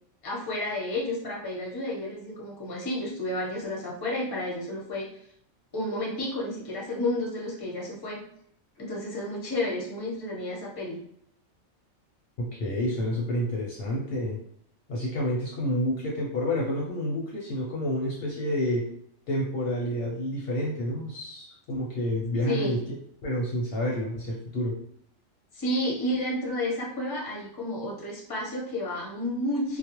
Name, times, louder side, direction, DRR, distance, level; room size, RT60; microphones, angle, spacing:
voice 1, 0.2-5.1 5.7-8.2 8.8-11.0 22.5-22.8 25.5-29.8, left 1 dB, 25° left, -3 dB, 0.5 m, -31 dB
voice 2, 12.4-14.4 14.9-18.9 19.3-22.8 23.2-24.8, left 1 dB, 60° left, -3 dB, 0.7 m, -29 dB
2.3 x 2.0 x 2.9 m, 0.68 s
omnidirectional pair, 1.3 m